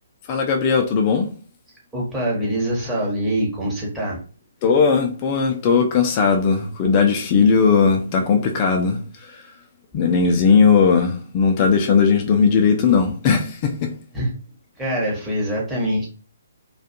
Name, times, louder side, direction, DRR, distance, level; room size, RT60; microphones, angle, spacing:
voice 1, 0.3-1.3 4.6-9.0 9.3-9.4 9.9-13.9, left 5 dB, 30° left, 0.4 m, -18 dB
voice 2, 1.9-4.2 14.1-14.4 14.8-16.1, right 1 dB, 5° right, 1.0 m, -24 dB
2.4 x 2.3 x 2.6 m
figure-of-eight pair, 135°, 0 cm